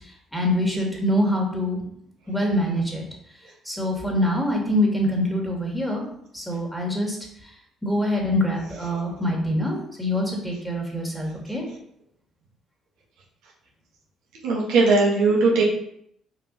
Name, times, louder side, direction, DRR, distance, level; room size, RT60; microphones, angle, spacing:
voice 1, 0.3-1.8 2.3-3.0 3.6-6.1 6.3-7.2 7.8-11.6, left 1 dB, ahead, -1 dB, 2.8 m, -24 dB
voice 2, 14.4-15.6, right 3 dB, 65° right, -3 dB, 1.7 m, -19 dB
5.4 x 4.9 x 4.4 m, 0.70 s
figure-of-eight pair, 45°, 0 cm